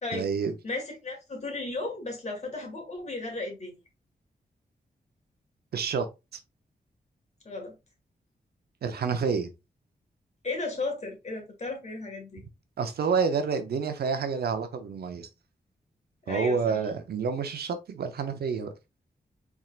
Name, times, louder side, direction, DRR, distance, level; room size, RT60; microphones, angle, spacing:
voice 1, 0.1-0.5 5.7-6.1 6.3-6.4 8.8-9.5 12.8-15.3 16.3-18.7, right 5 dB, 90° right, 0.7 m, -28 dB
voice 2, 0.6-3.7 7.5-7.8 10.4-12.4 16.3-16.8, left 2 dB, 45° left, 1.8 m, -35 dB
4.3 x 3.6 x 2.4 m
wide cardioid pair, 90°, 16 cm